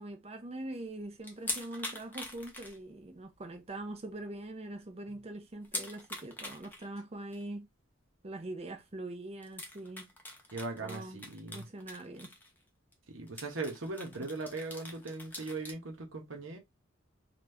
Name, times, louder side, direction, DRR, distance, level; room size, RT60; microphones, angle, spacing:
voice 1, 0.0-7.7 8.2-10.1 10.8-11.2 11.5-12.3 14.2-14.3, right 1 dB, 30° right, 0.7 m, -43 dB
sound 1, 1.2-3.2 3.5-3.6 4.1-4.2 4.4-4.5 5.6-6.9 7.3-7.4 8.8-8.9 9.4-12.6 12.9-13.0 13.3-15.7, left 1 dB, 10° left, 0.8 m, -43 dB
voice 2, 10.5-11.6 13.1-16.6, right 3 dB, 70° right, 1.1 m, -39 dB
2.9 x 2.4 x 3.4 m
head